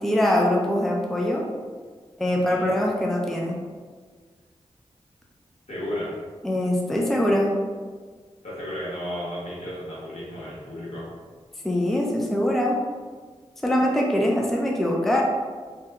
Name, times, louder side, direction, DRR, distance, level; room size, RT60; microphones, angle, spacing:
voice 1, 0.0-1.4 2.2-3.6 6.4-7.5 11.6-12.8 13.6-15.2, left 1 dB, 5° left, -1 dB, 0.4 m, -23 dB
voice 2, 2.3-2.7 5.7-6.1 8.4-11.1, equal, 70° left, -8 dB, 1.3 m, -33 dB
2.8 x 2.2 x 3.3 m, 1.5 s
wide cardioid pair, 75°, 12 cm